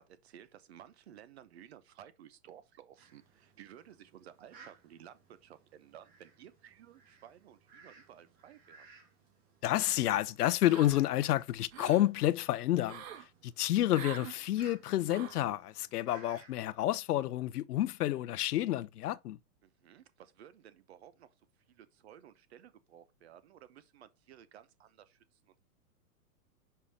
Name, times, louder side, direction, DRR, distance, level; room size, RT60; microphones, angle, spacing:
voice 1, 0.0-8.9 19.6-25.6, right 10 dB, 45° right, 0.8 m, -56 dB
Fowl, 3.0-16.7, right 4 dB, 20° right, 1.7 m, -60 dB
voice 2, 9.6-19.4, left 14 dB, 75° left, 0.6 m, -30 dB
sound 1, 10.7-11.2 11.5-12.1 12.8-13.3 13.9-14.4 15.1-15.4, right 9 dB, 60° right, 1.3 m, -45 dB
5.6 x 5.0 x 4.1 m
hypercardioid pair, 165°, 47 cm